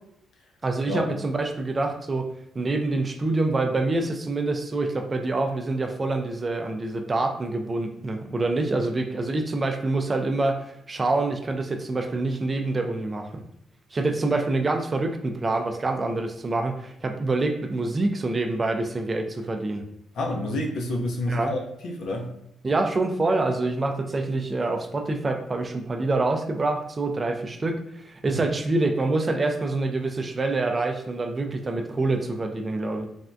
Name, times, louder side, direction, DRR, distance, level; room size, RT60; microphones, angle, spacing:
voice 1, 0.6-2.3 2.6-13.4 13.9-19.8 21.3-21.5 22.6-33.1, right 2 dB, 30° right, 4 dB, 0.3 m, -26 dB
voice 2, 20.1-22.3 28.3-28.5, left 1 dB, 70° left, 0 dB, 0.6 m, -29 dB
3.3 x 2.2 x 2.5 m, 0.78 s
cardioid pair, 90°, 0 cm